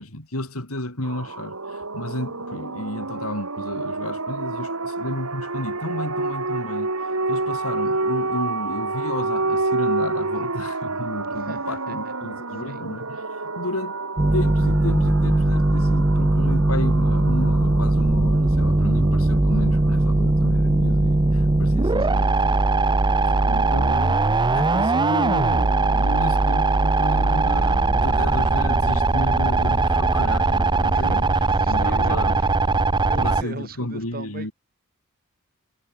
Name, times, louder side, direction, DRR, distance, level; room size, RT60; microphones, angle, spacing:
voice 1, 0.0-14.0 14.3-22.6 23.5-31.2 31.7-32.4 33.2-34.5, left 1 dB, 75° left, 5.6 m, -32 dB
sound 1, 1.0-20.5, right 3 dB, 70° right, 4.0 m, -29 dB
voice 2, 11.3-12.1 12.6-12.9 22.0-22.4 30.8-32.6 33.0-34.5, right 2 dB, 40° right, 7.4 m, -38 dB
sound 2, 14.2-33.4, right 2 dB, 20° right, 0.6 m, -20 dB
head